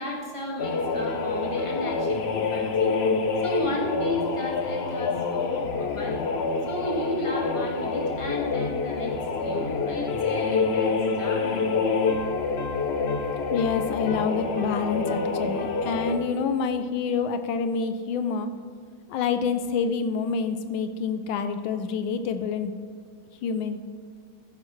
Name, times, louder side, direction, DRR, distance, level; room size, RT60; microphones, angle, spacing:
voice 1, 0.0-3.0 3.4-6.2 6.6-11.8, left 2 dB, 15° left, -2 dB, 1.9 m, -33 dB
sound 1, 0.6-16.3, left 4 dB, 55° left, 0.7 m, -27 dB
voice 2, 13.5-18.5 19.1-22.7 23.4-23.8, left 5 dB, 85° left, 9 dB, 1.5 m, -27 dB
14.0 x 11.0 x 3.2 m, 2.1 s
omnidirectional pair, 2.2 m